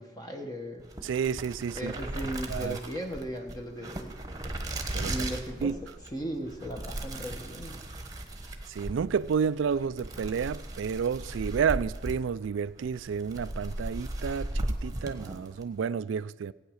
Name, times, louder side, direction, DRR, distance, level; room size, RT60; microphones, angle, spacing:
voice 1, 0.0-0.9 1.7-4.1 5.0-5.7 6.1-7.8, equal, 20° left, 1.1 m, -37 dB
sound 1, 0.8-15.7, right 1 dB, 20° right, 1.1 m, -37 dB
voice 2, 1.0-1.9 2.5-2.8 4.9-5.2 5.6-5.8 8.7-16.5, right 6 dB, 85° right, 0.3 m, -30 dB
16.0 x 9.2 x 6.4 m
head